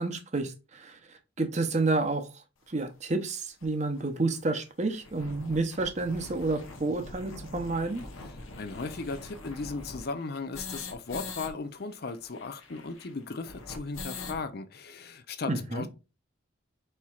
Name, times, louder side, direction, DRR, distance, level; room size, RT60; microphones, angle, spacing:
voice 1, 0.0-2.3 2.7-8.0 15.5-15.9, right 3 dB, 35° right, 0.7 m, -30 dB
sound 1, 2.8-2.9 3.6-3.7 4.0-4.1 4.3-4.4 4.8-11.5 11.8-11.9 12.1-14.4, left 3 dB, 80° left, 0.9 m, -43 dB
voice 2, 8.6-15.9, left 4 dB, 50° left, 0.5 m, -36 dB
4.4 x 4.3 x 2.4 m
head